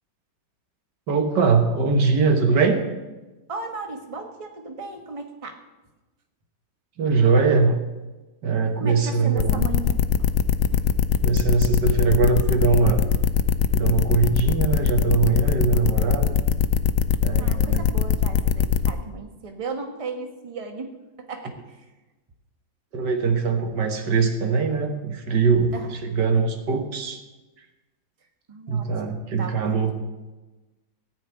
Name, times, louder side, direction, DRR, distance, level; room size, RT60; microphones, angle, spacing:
voice 1, 1.1-2.8 7.0-7.8 8.4-9.6 11.2-13.0 13.7-16.4 17.2-17.9 22.9-27.2 28.7-29.9, right 4 dB, 90° right, 5 dB, 2.0 m, -22 dB
voice 2, 3.5-5.6 8.8-10.0 10.7-10.8 17.4-21.6 25.7-25.9 28.5-28.9 29.4-29.9, right 3 dB, 20° right, 5 dB, 1.2 m, -35 dB
sound 1, 9.4-18.9, left 8 dB, 80° left, 1.3 m, -20 dB
16.0 x 5.5 x 9.0 m, 1.1 s
omnidirectional pair, 1.8 m